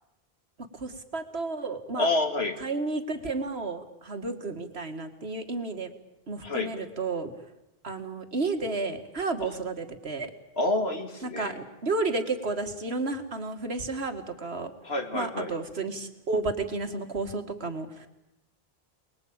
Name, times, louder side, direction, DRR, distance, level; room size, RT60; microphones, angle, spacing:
voice 1, 0.7-2.1 2.6-5.9 6.3-7.3 7.8-10.3 11.2-14.7 15.1-18.1, right 3 dB, 85° right, 7 dB, 2.3 m, -32 dB
voice 2, 2.0-2.6 6.4-6.7 9.4-9.6 10.5-11.5 14.8-15.5, left 2 dB, 85° left, 6 dB, 2.7 m, -28 dB
29.0 x 20.5 x 8.9 m, 0.92 s
omnidirectional pair, 1.0 m